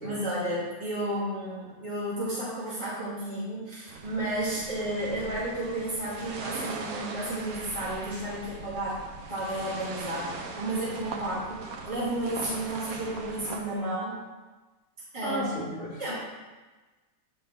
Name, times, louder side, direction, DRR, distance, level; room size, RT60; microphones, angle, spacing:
voice 1, 0.0-9.0 9.3-14.2 15.1-15.5 16.0-16.1, right 1 dB, 15° right, -10 dB, 2.0 m, -32 dB
sound 1, 3.9-13.6, right 4 dB, 60° right, 1.1 m, -40 dB
voice 2, 15.2-16.1, right 1 dB, 40° right, -9 dB, 2.7 m, -34 dB
8.8 x 4.6 x 3.5 m, 1.2 s
omnidirectional pair, 1.9 m